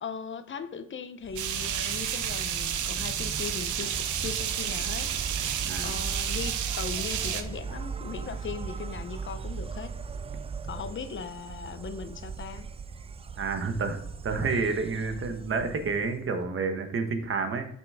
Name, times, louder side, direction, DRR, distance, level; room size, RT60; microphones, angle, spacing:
voice 1, 0.0-5.4 5.8-9.9 10.7-12.7, left 6 dB, 40° left, 11 dB, 0.8 m, -39 dB
Insect, 1.2-16.3, right 5 dB, 20° right, 0.3 m, -38 dB
sound 1, 1.4-7.4, right 9 dB, 75° right, 0.8 m, -31 dB
voice 2, 5.6-5.9 13.4-14.0 14.2-17.7, right 4 dB, 45° right, 7 dB, 1.2 m, -29 dB
6.1 x 6.1 x 3.6 m, 0.68 s
cardioid pair, 90°, 30 cm